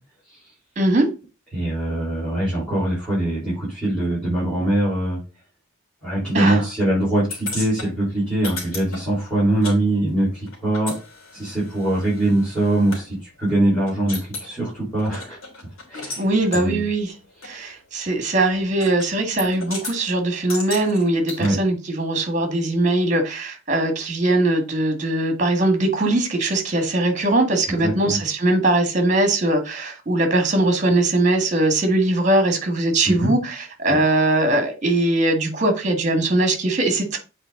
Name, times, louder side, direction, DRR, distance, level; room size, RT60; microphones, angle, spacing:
voice 1, 0.7-1.1 6.3-6.6 16.2-17.1 17.4-37.2, right 2 dB, 35° right, 1.8 m, -20 dB
voice 2, 1.5-5.2 6.0-10.9 11.3-15.4 15.9-16.2 16.5-16.8 21.4-21.6 27.7-28.2 33.0-33.3 33.9-34.0, right 1 dB, 5° left, 4.5 m, -22 dB
sound 1, 7.3-9.8 10.0-13.0 13.5-13.6 13.9-14.5 15.0-16.2 16.5-16.7 17.4-17.5 18.8-19.1 19.4-20.0 20.5-21.5, left 3 dB, 85° left, 3.1 m, -35 dB
8.0 x 4.5 x 3.9 m
head